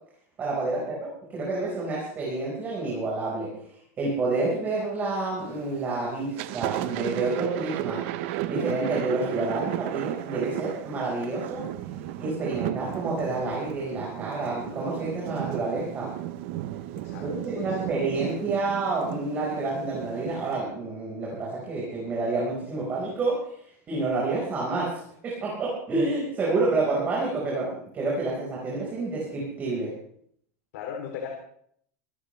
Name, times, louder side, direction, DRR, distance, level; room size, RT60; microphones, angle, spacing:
voice 1, 0.4-11.6 12.2-16.1 17.2-29.9, right 3 dB, 20° right, -4 dB, 5.0 m, -29 dB
Thunder, 5.4-5.8 6.2-20.6, right 14 dB, 55° right, 0.9 m, -34 dB
voice 2, 16.9-17.9 30.7-31.3, left 7 dB, 85° left, 1 dB, 3.3 m, -38 dB
24.5 x 14.5 x 3.4 m, 0.66 s
supercardioid pair, 170°, 8 cm